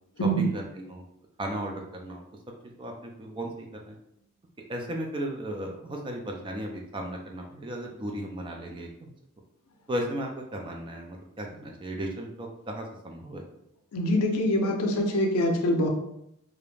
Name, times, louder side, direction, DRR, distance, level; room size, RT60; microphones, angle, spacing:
voice 1, 0.2-1.0 1.4-2.2 2.6-4.0 4.7-9.1 9.9-13.4, right 1 dB, 20° right, 2 dB, 0.3 m, -35 dB
voice 2, 13.9-15.9, equal, 70° left, 3 dB, 0.5 m, -24 dB
2.4 x 2.1 x 3.1 m, 0.77 s
head